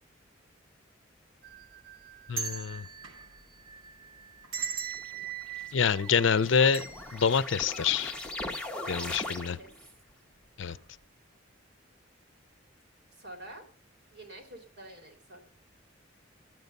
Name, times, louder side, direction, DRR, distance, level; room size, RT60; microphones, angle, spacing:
sound 1, 1.4-8.6 9.0-9.1 10.0-10.3 10.6-10.8, right 7 dB, 75° right, 1.2 m, -41 dB
voice 1, 2.3-2.9 5.7-6.9 7.1-8.1 8.9-9.6 10.6-10.8, left 6 dB, 65° left, 0.6 m, -26 dB
sound 2, 4.9-9.9, left 2 dB, 5° left, 1.1 m, -40 dB
voice 2, 8.8-9.7 13.1-13.6 14.1-15.5, right 1 dB, 60° right, 3.9 m, -47 dB
12.5 x 9.3 x 5.3 m
head